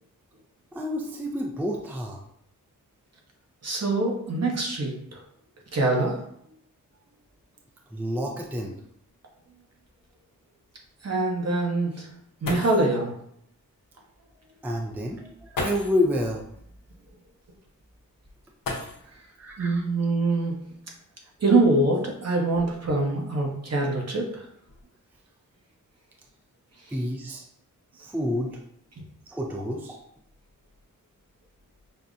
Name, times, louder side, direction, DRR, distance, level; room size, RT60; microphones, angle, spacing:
voice 1, 0.7-2.2 7.9-8.7 14.6-16.4 19.4-19.8 26.9-27.4 27.9-28.6 29.3-30.0, left 1 dB, 5° right, 1 dB, 0.4 m, -29 dB
voice 2, 3.6-5.2 5.7-6.2 11.0-12.1 12.4-13.1 19.6-20.7 21.4-24.4, right 2 dB, 50° right, 0 dB, 1.0 m, -24 dB
sound 1, 9.8-9.9 12.1-12.2 12.4-13.0 14.3-14.4 15.5-16.1 18.6-19.3 20.7-20.8 21.5-23.0 23.7-24.1 24.4-24.8, left 2 dB, 75° left, 0.8 m, -36 dB
5.5 x 2.2 x 2.5 m, 0.71 s
cardioid pair, 70°, 34 cm